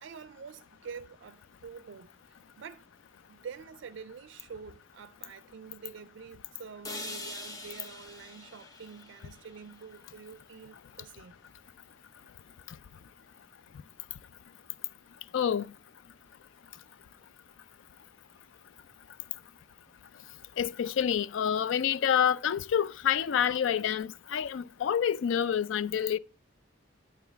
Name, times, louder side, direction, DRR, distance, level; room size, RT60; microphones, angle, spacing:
voice 1, 0.0-2.9 3.3-11.4, right 6 dB, 65° right, 0.4 m, -47 dB
sound 1, 6.8-10.9, left 2 dB, 20° left, 0.8 m, -45 dB
voice 2, 15.3-15.7 20.6-26.2, left 8 dB, 70° left, 0.4 m, -28 dB
9.3 x 8.9 x 3.4 m
head